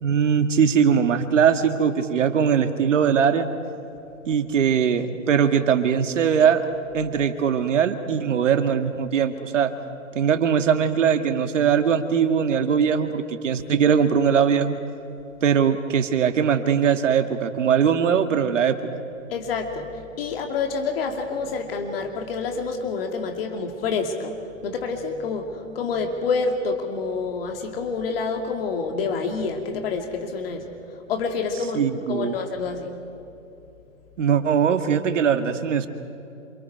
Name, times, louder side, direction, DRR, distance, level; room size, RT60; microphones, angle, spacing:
voice 1, 0.0-3.5 4.3-6.6 6.9-9.7 10.2-14.8 15.4-18.8 31.8-32.4 34.2-35.9, right 7 dB, 65° right, 7 dB, 2.0 m, -21 dB
voice 2, 19.3-19.9 20.2-24.3 24.6-30.7 31.1-32.9, left 4 dB, 45° left, 3 dB, 2.5 m, -27 dB
28.0 x 27.5 x 4.6 m, 2.9 s
hypercardioid pair, 140°, 40 cm